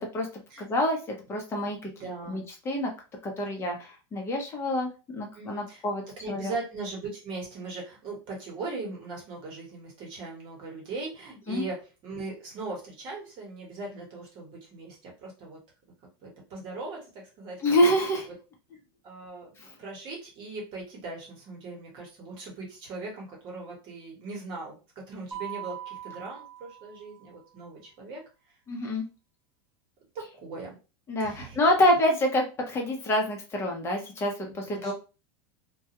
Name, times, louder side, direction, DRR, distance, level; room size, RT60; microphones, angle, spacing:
voice 1, 0.1-1.9 2.3-2.9 3.2-6.5 11.5-11.6 17.6-18.3 19.6-19.7 28.7-29.1 31.1-34.9, left 1 dB, 20° left, 1 dB, 0.8 m, -27 dB
voice 2, 2.0-2.5 5.3-5.8 6.2-15.6 16.2-17.9 19.0-19.5 19.8-28.2 30.1-30.8 31.2-31.6 34.4-34.9, right 3 dB, 40° right, -1 dB, 1.2 m, -39 dB
Mallet percussion, 25.3-27.4, right 10 dB, 15° right, 1.0 m, -41 dB
2.3 x 2.2 x 2.9 m, 0.31 s
supercardioid pair, 150°, 13 cm